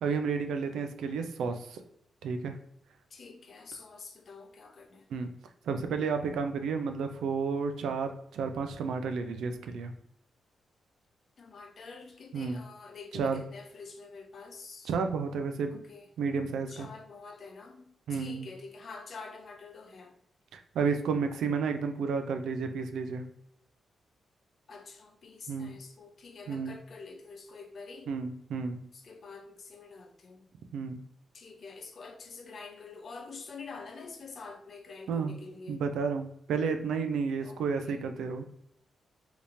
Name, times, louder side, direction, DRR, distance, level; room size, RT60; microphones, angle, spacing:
voice 1, 0.0-1.8 2.2-2.6 5.1-5.3 5.7-9.9 12.3-12.6 13.1-13.4 14.9-15.8 16.2-16.9 18.1-18.5 20.5-23.3 25.5-25.7 26.5-26.8 28.1-28.8 30.7-31.0 35.1-35.3 35.7-38.4, right 5 dB, 85° right, 7 dB, 0.4 m, -31 dB
voice 2, 3.1-5.1 11.4-14.9 15.7-16.1 16.7-20.2 24.7-28.1 28.9-30.5 31.3-35.8 37.4-38.0, left 4 dB, 55° left, 5 dB, 0.6 m, -47 dB
3.4 x 2.9 x 2.6 m, 0.74 s
cardioid pair, 85°, 0 cm